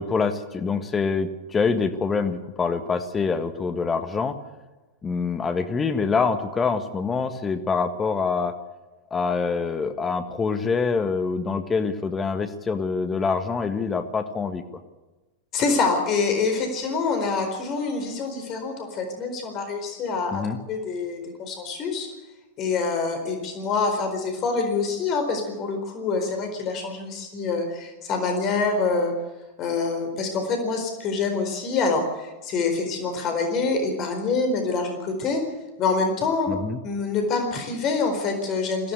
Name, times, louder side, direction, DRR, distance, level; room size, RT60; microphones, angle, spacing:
voice 1, 0.0-4.4 5.0-8.5 9.1-14.6 20.3-20.6 36.5-36.8, left 5 dB, 20° left, 8 dB, 1.7 m, -25 dB
voice 2, 15.5-20.4 20.7-22.1 22.6-29.1 29.6-35.4 35.8-36.5 36.8-38.9, left 4 dB, 35° left, 5 dB, 4.4 m, -26 dB
22.0 x 16.5 x 8.1 m, 1.1 s
figure-of-eight pair, 90°, 0 cm